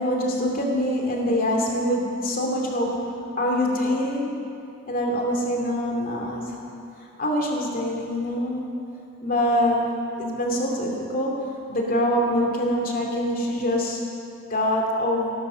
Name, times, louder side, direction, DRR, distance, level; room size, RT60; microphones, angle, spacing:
voice 1, 0.0-3.1 3.4-4.4 4.9-6.6 7.2-8.6 9.2-9.9 10.2-11.3 11.7-14.0 14.5-15.3, equal, 40° left, 0 dB, 2.6 m, -24 dB
16.0 x 12.0 x 6.8 m, 2.6 s
head